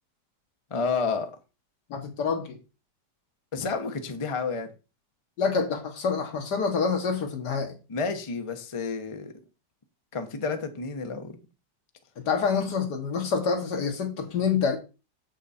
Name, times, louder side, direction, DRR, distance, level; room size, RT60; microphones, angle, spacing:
voice 1, 0.7-1.3 3.5-4.7 7.9-9.3 10.1-11.4, left 4 dB, 25° left, 0.8 m, -30 dB
voice 2, 1.9-2.6 5.4-7.7 12.3-14.8, left 5 dB, 70° left, 2.0 m, -27 dB
7.4 x 6.1 x 4.2 m
omnidirectional pair, 1.9 m